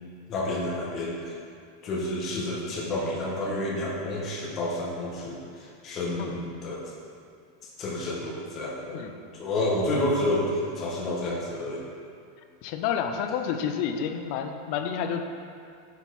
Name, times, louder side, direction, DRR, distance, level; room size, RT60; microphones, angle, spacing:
voice 1, 0.3-1.4 1.8-6.8 7.8-9.1 9.3-11.8, left 1 dB, 35° left, -3 dB, 1.3 m, -29 dB
voice 2, 8.9-9.2 12.6-15.2, left 8 dB, 55° left, 6 dB, 0.4 m, -30 dB
6.9 x 4.4 x 4.0 m, 2.3 s
supercardioid pair, 145°, 0 cm